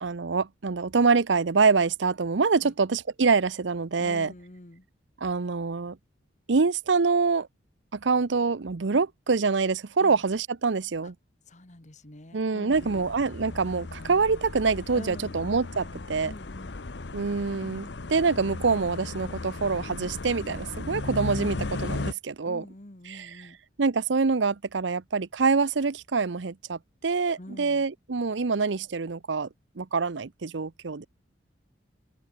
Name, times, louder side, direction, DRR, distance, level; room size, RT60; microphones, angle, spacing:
voice 1, 0.0-4.3 5.2-6.0 6.5-7.5 7.9-11.1 12.3-16.3 17.1-22.6 23.1-23.3 23.8-29.5 29.8-31.0, right 4 dB, 75° right, 0.7 m, -25 dB
voice 2, 4.0-4.9 10.0-10.2 11.0-11.1 11.5-13.0 14.9-15.4 16.2-16.8 22.4-23.6 27.4-27.8, left 1 dB, 40° left, 1.9 m, -46 dB
sound 1, 12.7-22.1, left 2 dB, 65° left, 0.9 m, -36 dB
open air
head